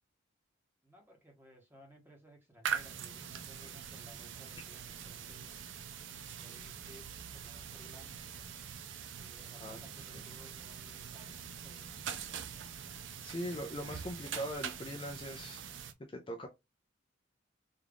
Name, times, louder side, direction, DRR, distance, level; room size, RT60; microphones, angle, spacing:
voice 1, 0.8-5.6 6.2-8.3 9.2-11.9, equal, 10° right, 1.0 m, -59 dB
sound 1, 2.6-15.9, right 7 dB, 70° right, 0.5 m, -43 dB
voice 2, 13.2-15.6 16.1-16.5, equal, 25° left, 0.4 m, -40 dB
3.7 x 2.4 x 3.4 m
head